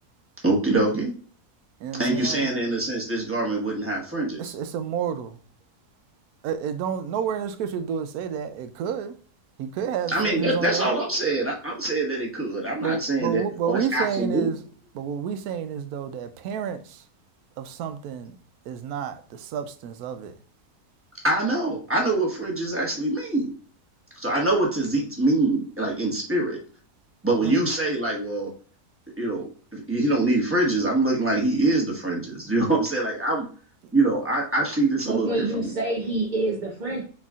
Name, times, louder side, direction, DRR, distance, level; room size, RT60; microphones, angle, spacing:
voice 1, 0.4-1.1 2.0-4.5 10.1-14.5 21.2-23.5 24.2-26.6 27.2-28.5 29.2-29.5 29.7-33.4 33.9-35.7, right 2 dB, 10° right, 0.9 m, -24 dB
voice 2, 1.8-2.5 4.4-5.3 6.4-9.1 9.6-10.9 12.8-14.5 14.9-16.8 17.6-18.3 18.7-19.2 19.5-20.3 27.4-27.6, right 7 dB, 75° right, 1.0 m, -30 dB
voice 3, 35.1-37.0, right 2 dB, 40° right, 0.7 m, -27 dB
4.5 x 4.1 x 2.4 m
omnidirectional pair, 1.7 m